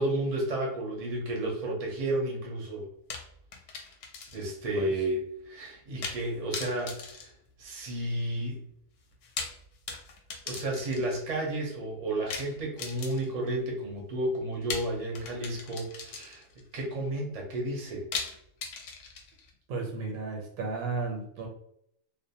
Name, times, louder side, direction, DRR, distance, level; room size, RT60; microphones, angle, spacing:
voice 1, 0.0-2.9 4.3-7.2 7.6-8.6 10.5-16.4 16.7-18.0, right 1 dB, 45° right, -1 dB, 0.5 m, -32 dB
sound 1, 3.1-4.6 4.9-5.0 6.0-6.3 6.5-8.1 9.1-11.3 12.3-13.5 14.7-16.6 18.1-19.5, left 5 dB, 70° left, 0.9 m, -39 dB
voice 2, 19.7-21.5, right 4 dB, 80° right, 0 dB, 1.1 m, -34 dB
2.5 x 2.1 x 2.7 m, 0.72 s
omnidirectional pair, 1.4 m